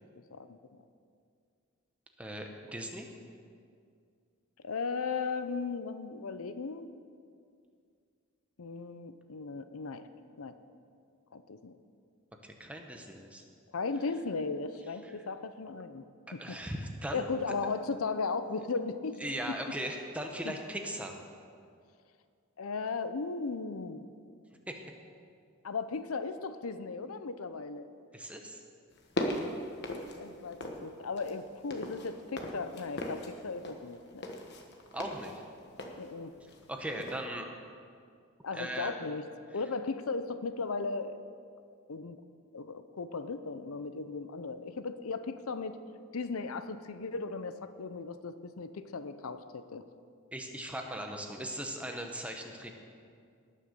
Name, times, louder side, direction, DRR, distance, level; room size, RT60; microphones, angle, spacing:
voice 1, 2.2-3.1 12.4-13.4 15.0-15.1 16.4-17.3 19.2-21.2 24.7-24.8 28.1-28.6 34.9-35.4 36.7-37.5 38.5-38.9 50.3-52.7, right 1 dB, 5° right, 3 dB, 1.0 m, -38 dB
voice 2, 4.6-6.9 8.6-10.1 10.4-10.5 11.3-11.7 13.7-16.0 16.3-16.6 17.1-19.2 19.5-19.6 20.4-20.5 22.6-24.0 25.6-27.9 30.2-34.3 36.0-36.3 38.4-39.3 39.5-41.2 41.9-42.2 42.5-45.8 46.1-49.8, left 4 dB, 75° left, 11 dB, 0.6 m, -36 dB
sound 1, 28.9-30.9 31.2-36.7 37.0-37.2, left 1 dB, 50° left, 1.3 m, -39 dB
18.5 x 6.5 x 6.7 m, 2.3 s
head